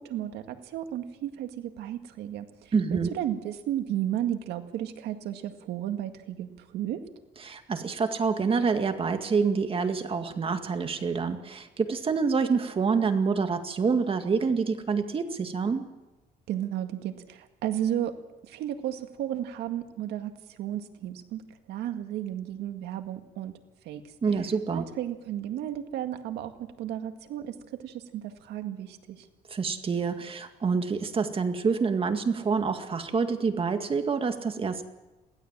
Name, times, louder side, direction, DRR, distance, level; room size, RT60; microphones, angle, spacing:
voice 1, 0.0-7.0 16.5-18.2 18.4-21.4 21.7-23.5 23.8-24.0 24.7-29.3, right 11 dB, 80° right, 7 dB, 2.0 m, -33 dB
voice 2, 2.7-3.1 7.4-15.8 24.2-24.8 29.5-34.8, right 5 dB, 35° right, 7 dB, 2.0 m, -27 dB
22.5 x 16.5 x 7.5 m, 1.1 s
cardioid pair, 110°, 17 cm